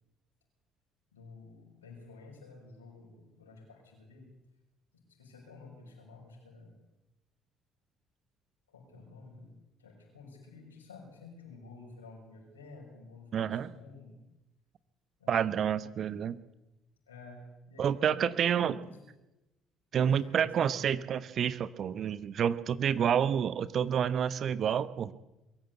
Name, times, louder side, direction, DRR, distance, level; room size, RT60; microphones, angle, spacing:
voice 1, 1.1-4.3 5.1-6.8 8.7-9.5 9.8-14.2 15.2-15.7 17.1-19.0 20.0-20.9, left 3 dB, 85° left, 0 dB, 6.4 m, -51 dB
voice 2, 13.3-13.7 15.3-16.4 17.8-18.8 19.9-25.1, right 8 dB, 50° right, 15 dB, 1.0 m, -29 dB
22.5 x 14.0 x 8.2 m, 0.97 s
figure-of-eight pair, 50°, 0 cm